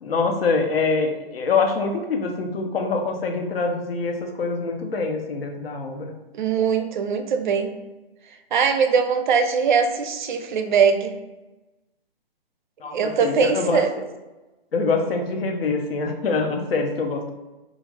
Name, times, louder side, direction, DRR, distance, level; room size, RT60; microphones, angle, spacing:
voice 1, 0.0-6.1 12.8-13.8 14.7-17.3, left 4 dB, 75° left, 3 dB, 0.7 m, -24 dB
voice 2, 6.3-7.8 8.5-11.1 12.9-13.9, right 6 dB, 55° right, 7 dB, 0.4 m, -21 dB
2.4 x 2.4 x 3.2 m, 1.1 s
hypercardioid pair, 145°, 30 cm